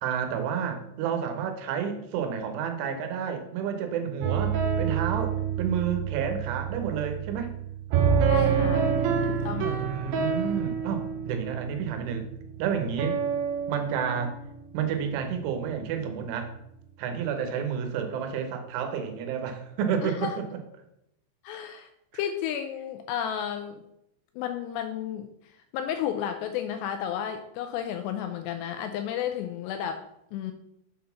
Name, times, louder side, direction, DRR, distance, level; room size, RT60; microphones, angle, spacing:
voice 1, 0.0-7.6 9.5-12.3 12.6-13.2 13.7-14.4 14.7-16.5 17.0-20.5 22.1-22.2, right 7 dB, 90° right, 5 dB, 3.4 m, -30 dB
sound 1, 4.2-15.0, right 7 dB, 75° right, 2.2 m, -28 dB
voice 2, 8.3-9.9 20.0-20.4 21.4-21.9 22.1-23.8 24.4-25.3 25.7-30.0 30.3-30.5, left 9 dB, 85° left, 6 dB, 2.5 m, -32 dB
7.5 x 4.1 x 5.6 m, 0.80 s
omnidirectional pair, 5.3 m